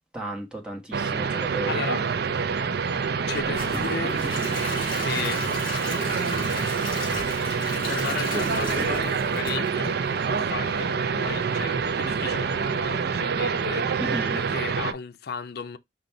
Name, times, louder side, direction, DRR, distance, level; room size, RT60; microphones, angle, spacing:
voice 1, 0.1-1.8 14.0-14.4, right 1 dB, 5° right, 1.2 m, -34 dB
sound 1, 0.9-14.9, right 6 dB, 60° right, 0.4 m, -27 dB
voice 2, 1.7-2.0 3.3-4.5 5.0-5.4 5.9-6.6 7.9-13.9 14.3-15.8, left 5 dB, 60° left, 0.5 m, -35 dB
sound 2, 2.3-14.8, equal, 80° right, 1.1 m, -43 dB
Gurgling / Toilet flush / Trickle dribble, 3.3-10.4 10.8-10.9 11.3-11.4, left 2 dB, 30° left, 2.4 m, -35 dB
5.1 x 2.3 x 4.1 m
head